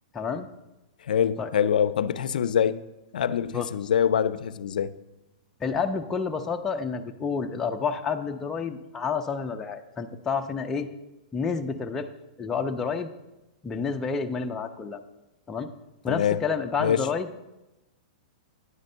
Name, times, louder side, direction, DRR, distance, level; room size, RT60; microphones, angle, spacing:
voice 1, 0.1-0.5 1.4-1.5 3.5-3.7 5.6-10.9 11.3-12.1 12.4-13.1 13.6-15.0 15.5-15.7 16.0-17.3, left 5 dB, 10° left, 0.4 m, -29 dB
voice 2, 1.1-2.8 3.1-4.9 16.1-16.4 16.8-17.1, left 8 dB, 85° left, 0.4 m, -24 dB
9.8 x 5.2 x 6.6 m
hypercardioid pair, 170°, 4 cm